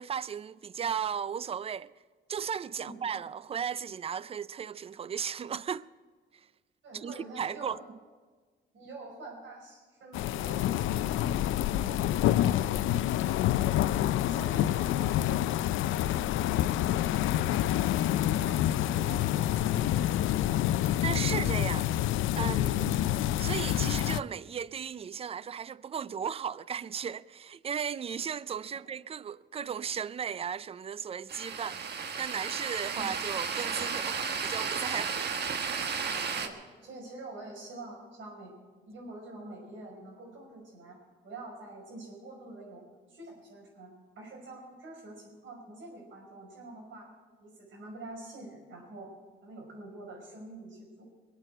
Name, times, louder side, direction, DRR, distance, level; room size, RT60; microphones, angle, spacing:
voice 1, 0.0-1.9 2.3-5.9 6.9-8.0 21.0-22.9 23.4-35.3, right 7 dB, 30° right, 0.4 m, -36 dB
voice 2, 6.8-7.8 8.7-11.3 11.8-13.3 13.9-15.5 15.8-16.2 16.5-17.9 18.2-20.6 22.7-23.0 32.9-33.1 36.3-38.5 38.9-41.0 41.2-47.1 47.4-49.1 49.4-51.1, right 2 dB, 75° right, 5.6 m, -46 dB
sound 1, 10.1-24.2, left 13 dB, 80° left, 0.4 m, -27 dB
sound 2, 31.3-36.5, right 6 dB, 55° right, 1.4 m, -33 dB
21.5 x 8.2 x 7.8 m
cardioid pair, 90°, 20 cm